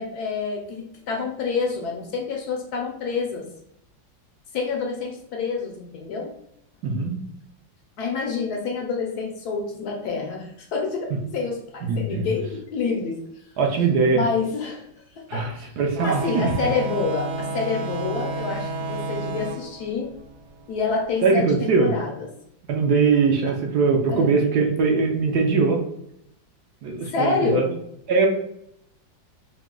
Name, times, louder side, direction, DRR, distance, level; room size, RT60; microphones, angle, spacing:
voice 1, 0.0-3.5 4.5-6.3 8.0-13.2 14.1-14.8 15.1-15.7 16.0-20.1 20.7-22.3 23.4-23.5 24.1-24.4 27.0-27.8, left 4 dB, 65° left, 1 dB, 1.1 m, -28 dB
voice 2, 6.8-7.2 11.8-12.3 13.6-14.2 15.3-15.5 15.8-16.5 21.2-21.9 22.7-25.8 26.8-27.7 28.1-28.3, right 4 dB, 70° right, 1 dB, 1.1 m, -21 dB
sound 1, 16.0-21.1, right 2 dB, 85° right, 1.3 m, -31 dB
4.8 x 2.2 x 3.7 m, 0.75 s
omnidirectional pair, 2.0 m